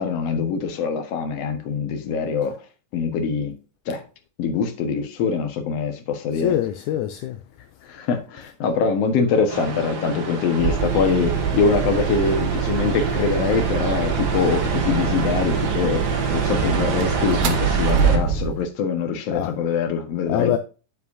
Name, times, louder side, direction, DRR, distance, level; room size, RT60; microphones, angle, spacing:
voice 1, 0.0-2.6 2.9-3.6 3.9-4.0 4.4-6.6 7.8-20.6, left 5 dB, 55° left, 2.1 m, -23 dB
voice 2, 6.3-7.4 19.3-19.5 20.3-20.6, left 12 dB, 80° left, 1.8 m, -24 dB
sound 1, 9.5-18.2, right 4 dB, 50° right, 1.6 m, -29 dB
sound 2, 10.6-18.6, right 7 dB, 90° right, 3.1 m, -24 dB
9.7 x 8.0 x 2.7 m
omnidirectional pair, 4.0 m